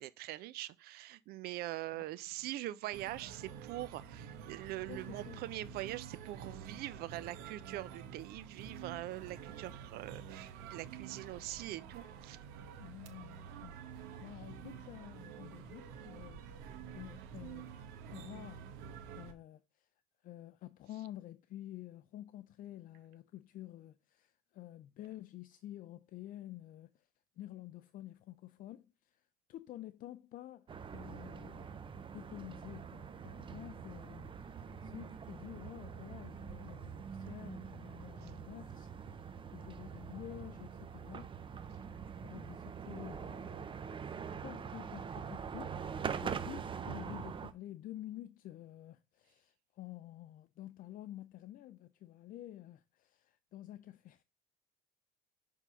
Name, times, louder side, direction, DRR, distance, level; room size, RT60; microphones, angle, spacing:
voice 1, 0.0-12.4 38.2-38.3, right 15 dB, 70° right, 0.6 m, -43 dB
sound 1, 2.9-19.3, right 7 dB, 85° right, 1.1 m, -49 dB
voice 2, 4.9-5.5 12.8-17.7 18.1-18.6 19.1-19.9 20.2-27.1 27.4-31.7 32.1-41.7 41.9-44.1 44.4-54.2, left 14 dB, 55° left, 0.5 m, -50 dB
sound 2, 30.7-47.5, right 6 dB, 30° right, 0.7 m, -44 dB
6.0 x 3.6 x 5.7 m
supercardioid pair, 95°, 17 cm